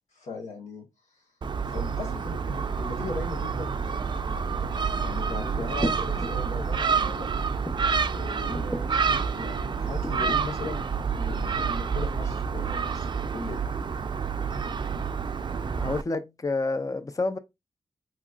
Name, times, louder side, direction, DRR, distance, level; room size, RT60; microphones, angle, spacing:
voice 1, 0.1-0.8 1.1-1.2 1.6-3.8 4.2-7.3 8.0-8.9 9.3-13.6, left 3 dB, 90° left, 1.1 m, -39 dB
Gull seagull, 1.4-16.0, right 5 dB, 40° right, 0.3 m, -28 dB
sound 1, 5.6-6.4 6.9-7.1 7.6-8.0 8.5-8.9 9.6-10.4, equal, 5° right, 0.7 m, -33 dB
voice 2, 15.8-17.4, left 3 dB, 30° left, 0.5 m, -29 dB
3.5 x 3.1 x 2.4 m
cardioid pair, 50°, 12 cm